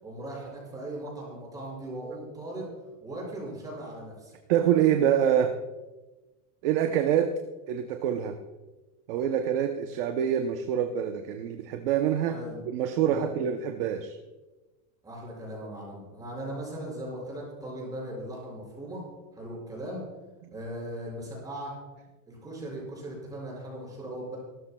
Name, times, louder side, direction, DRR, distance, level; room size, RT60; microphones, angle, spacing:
voice 1, 0.0-2.7 3.0-4.3 12.3-12.6 13.0-13.3 15.0-19.0 19.3-20.1 20.5-21.7 22.3-24.4, right 1 dB, 10° right, -3 dB, 5.4 m, -38 dB
voice 2, 4.5-5.6 6.6-8.4 9.1-12.4 12.7-14.2, right 9 dB, 40° right, 6 dB, 0.7 m, -26 dB
25.0 x 13.5 x 2.3 m, 1.2 s
supercardioid pair, 175°, 44 cm